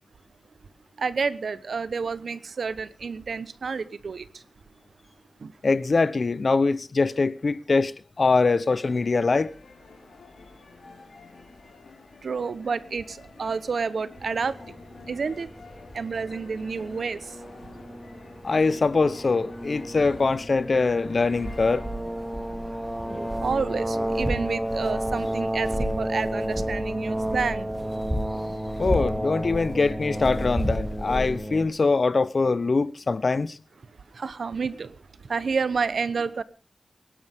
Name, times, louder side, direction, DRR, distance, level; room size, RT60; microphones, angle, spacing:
voice 1, 1.0-4.4 5.4-5.5 12.2-14.6 15.1-15.5 15.9-17.4 23.4-27.7 34.1-36.4, right 5 dB, 75° right, 1.0 m, -29 dB
voice 2, 5.6-9.5 18.4-21.8 28.8-33.6, left 3 dB, 50° left, 0.8 m, -23 dB
sound 1, 8.7-25.1, left 4 dB, 80° left, 4.0 m, -49 dB
sound 2, 14.2-31.7, right 1 dB, 10° right, 1.9 m, -31 dB
24.0 x 11.5 x 3.6 m
wide cardioid pair, 100°, 0 cm